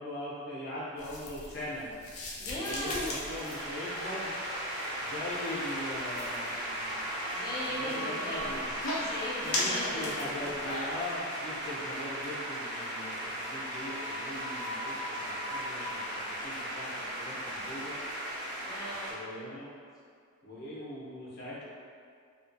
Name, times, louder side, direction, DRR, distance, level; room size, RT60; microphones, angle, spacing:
voice 1, 0.0-1.9 2.5-4.3 5.0-6.9 7.6-8.7 9.4-18.0 19.1-19.7 20.4-21.6, left 1 dB, 50° left, -8 dB, 0.7 m, -41 dB
sound 1, 1.0-10.9, left 2 dB, 85° left, 0.5 m, -39 dB
voice 2, 2.4-3.2 7.3-8.5 8.9-10.5 18.6-19.2, left 1 dB, 20° left, -7 dB, 0.5 m, -38 dB
sound 2, 2.9-19.1, equal, 65° right, 0.9 m, -37 dB
sound 3, 6.4-15.9, equal, 40° right, 0.6 m, -45 dB
2.4 x 2.4 x 2.6 m, 2.2 s
head